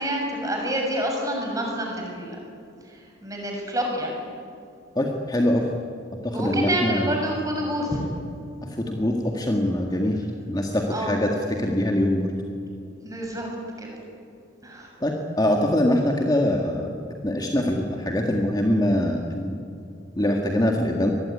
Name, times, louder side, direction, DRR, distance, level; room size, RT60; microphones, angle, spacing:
voice 1, 0.0-2.4 3.2-4.2 6.3-8.0 10.9-11.1 13.0-13.5 13.8-14.0 14.6-14.9, right 1 dB, 15° right, 0 dB, 6.8 m, -28 dB
voice 2, 5.0-5.7 6.2-7.2 8.6-12.3 15.0-16.9 17.2-19.6 20.2-21.1, left 1 dB, 20° left, 1 dB, 1.9 m, -23 dB
25.5 x 20.5 x 9.9 m, 2.5 s
head